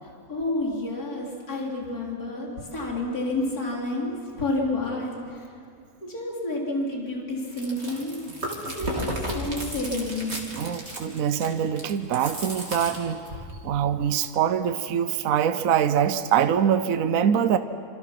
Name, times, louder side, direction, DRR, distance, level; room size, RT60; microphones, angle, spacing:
voice 1, 0.0-5.5 6.0-8.2 8.5-10.3, left 2 dB, 75° left, -2 dB, 4.1 m, -30 dB
Chewing mastication, 7.4-13.5, equal, 45° right, 3.5 m, -34 dB
voice 2, 10.5-13.2 13.6-17.6, right 8 dB, 65° right, 10 dB, 1.2 m, -24 dB
27.0 x 27.0 x 6.0 m, 2.4 s
omnidirectional pair, 1.6 m